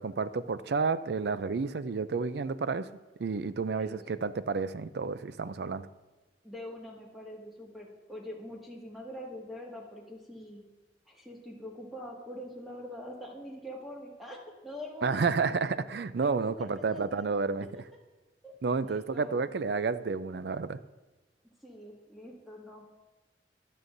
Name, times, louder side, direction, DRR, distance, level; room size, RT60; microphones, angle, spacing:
voice 1, 0.0-2.9 3.2-5.9 15.0-17.7 18.6-20.8, right 4 dB, 70° right, 14 dB, 0.4 m, -30 dB
voice 2, 6.4-10.6 11.1-15.2 16.4-17.3 18.4-18.5 19.1-19.5 21.6-22.8, left 1 dB, ahead, -3 dB, 1.8 m, -44 dB
14.0 x 11.0 x 2.6 m, 1.1 s
head